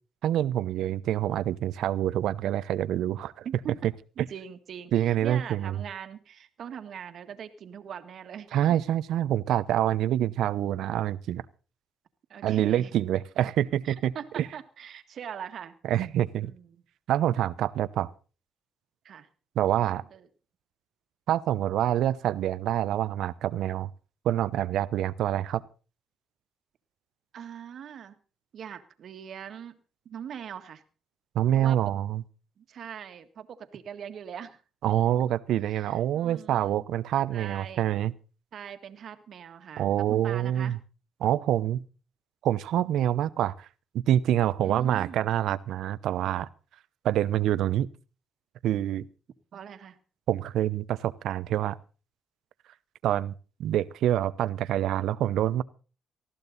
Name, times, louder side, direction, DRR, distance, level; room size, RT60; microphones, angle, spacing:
voice 1, 0.2-3.3 4.9-5.8 8.5-11.4 12.4-14.5 15.8-16.5 17.1-18.1 19.6-20.0 21.3-23.9 24.2-25.6 31.3-32.2 34.8-38.1 39.8-40.8 41.2-41.8 42.4-43.7 44.1-46.5 47.0-47.9 48.6-49.1 50.3-51.8 53.0-53.3 53.6-55.6, right 12 dB, 80° right, 17 dB, 0.8 m, -26 dB
voice 2, 3.4-3.8 4.3-8.5 12.3-12.9 13.8-15.8 16.4-16.8 19.0-19.3 19.9-20.3 27.3-28.2 28.5-29.8 30.0-30.8 31.6-31.8 32.6-34.6 35.6-36.8 37.3-37.9 38.5-40.8 44.6-45.3 49.5-50.0, right 8 dB, 65° right, 9 dB, 1.7 m, -41 dB
19.5 x 14.0 x 4.1 m, 0.36 s
cardioid pair, 90°, 0 cm